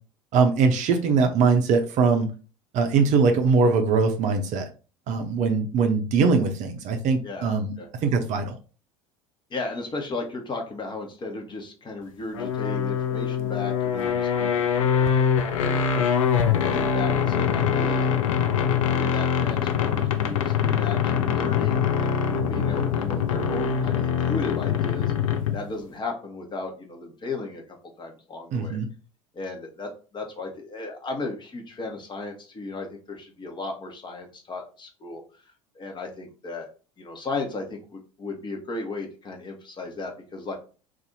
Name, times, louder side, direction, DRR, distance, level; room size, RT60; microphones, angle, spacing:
voice 1, 0.3-2.3 2.7-4.7 5.1-7.7 8.0-8.5 28.5-28.9, right 4 dB, 45° right, 6 dB, 0.6 m, -21 dB
voice 2, 9.5-15.1 16.4-18.1 18.7-25.1 25.5-27.6 28.0-28.8 29.3-35.2 35.7-36.7 37.0-40.6, left 3 dB, 25° left, 2 dB, 1.0 m, -35 dB
sound 1, 12.3-25.7, left 7 dB, 75° left, 0.5 m, -24 dB
2.6 x 2.5 x 4.0 m, 0.36 s
figure-of-eight pair, 65°, 17 cm